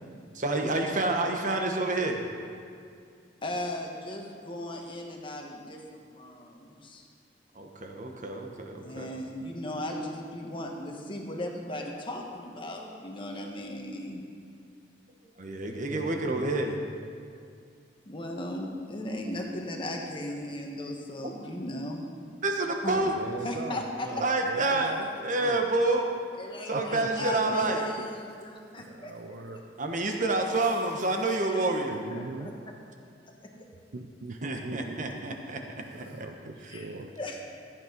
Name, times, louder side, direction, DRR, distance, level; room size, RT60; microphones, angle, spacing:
voice 1, 0.3-2.2 7.5-9.1 15.4-16.9 21.2-21.3 22.4-23.1 24.2-24.9 25.2-26.0 26.7-27.8 29.8-32.0 34.4-35.6 35.9-36.1, right 2 dB, 45° right, 3 dB, 1.3 m, -28 dB
voice 2, 3.4-7.0 8.8-14.2 18.0-22.1 22.8-22.9 23.4-24.3 26.4-29.1 31.5-31.6 32.1-32.5 36.7-36.9 37.2-37.4, left 1 dB, 30° left, 1 dB, 1.5 m, -37 dB
voice 3, 15.9-16.5 22.9-25.1 25.4-25.6 26.7-27.5 28.8-29.6 31.0-31.1 31.9-32.5 33.9-35.2 35.9-37.1, right 3 dB, 65° right, 4 dB, 0.7 m, -40 dB
14.0 x 8.8 x 5.2 m, 2.3 s
head